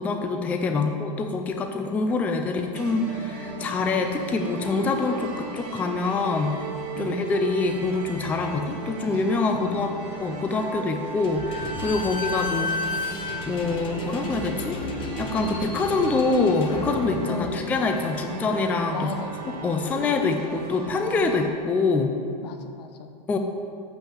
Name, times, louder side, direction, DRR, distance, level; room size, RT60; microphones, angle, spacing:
voice 1, 0.0-6.5 7.0-9.9 10.2-12.7 13.5-19.1 19.5-22.1 23.3-23.4, left 3 dB, 5° left, 5 dB, 0.3 m, -25 dB
sound 1, 2.7-21.5, right 4 dB, 65° right, 1.6 m, -36 dB
voice 2, 9.5-10.1 12.1-12.2 17.3-17.7 18.9-19.4 22.4-23.1, left 7 dB, 75° left, 7 dB, 1.0 m, -36 dB
Slam / Squeak, 11.2-18.5, left 3 dB, 25° left, 1.0 m, -33 dB
7.5 x 5.6 x 7.1 m, 2.4 s
supercardioid pair, 155°, 21 cm